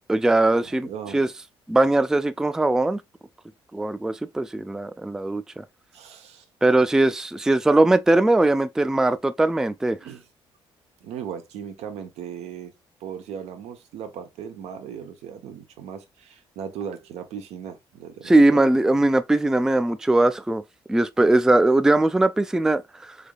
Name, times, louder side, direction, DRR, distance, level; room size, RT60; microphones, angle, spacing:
voice 1, 0.1-1.3 1.7-3.0 3.7-5.6 6.6-10.0 18.2-20.6 20.9-23.2, right 2 dB, 5° right, 0.3 m, -20 dB
voice 2, 0.6-1.2 5.9-6.5 10.0-10.2 11.0-12.7 13.0-18.6, right 8 dB, 80° right, 0.8 m, -37 dB
3.6 x 3.4 x 2.2 m
supercardioid pair, 75°, 11 cm